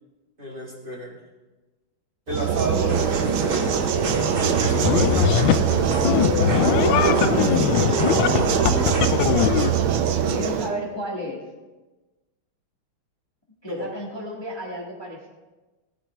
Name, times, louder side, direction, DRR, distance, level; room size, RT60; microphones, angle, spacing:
voice 1, 0.4-1.2 2.3-3.7 4.4-5.5 5.8-6.5 7.3-8.7 10.5-10.8 13.7-13.9, equal, 25° right, -3 dB, 1.8 m, -31 dB
sound 1, 2.3-10.7, right 8 dB, 80° right, 1.6 m, -23 dB
sound 2, 2.9-9.4, right 3 dB, 50° right, 2.5 m, -28 dB
sound 3, 4.6-5.7 6.0-9.7, left 11 dB, 80° left, 1.3 m, -21 dB
voice 2, 10.3-11.4 13.6-15.3, equal, 15° left, -3 dB, 1.4 m, -32 dB
16.5 x 10.5 x 3.4 m, 1.2 s
omnidirectional pair, 2.2 m